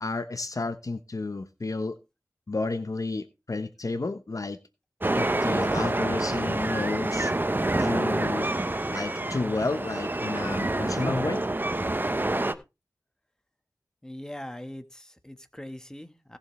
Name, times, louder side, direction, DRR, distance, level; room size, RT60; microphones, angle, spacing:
voice 1, 0.0-2.0 2.5-4.6 5.1-7.3 7.8-8.5 8.9-11.4, left 3 dB, 55° left, 1.0 m, -31 dB
sound 1, 5.0-12.5, right 2 dB, 30° right, 0.9 m, -27 dB
voice 2, 14.0-16.4, left 1 dB, 10° left, 1.3 m, -41 dB
18.0 x 7.1 x 3.2 m
wide cardioid pair, 55°, 7 cm